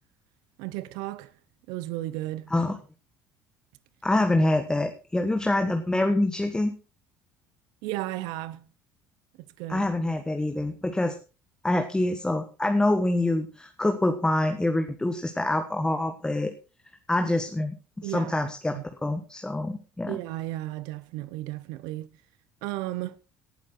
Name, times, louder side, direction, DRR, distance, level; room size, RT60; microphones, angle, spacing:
voice 1, 0.6-1.3 1.7-2.5 7.8-8.6 9.6-9.9 18.0-18.8 20.1-22.1 22.6-23.2, right 16 dB, 75° right, 0.8 m, -34 dB
voice 2, 4.0-6.7 9.7-11.1 11.6-16.5 17.1-20.2, left 1 dB, 10° left, 1.5 m, -26 dB
18.0 x 8.2 x 4.3 m
supercardioid pair, 85°, 7 cm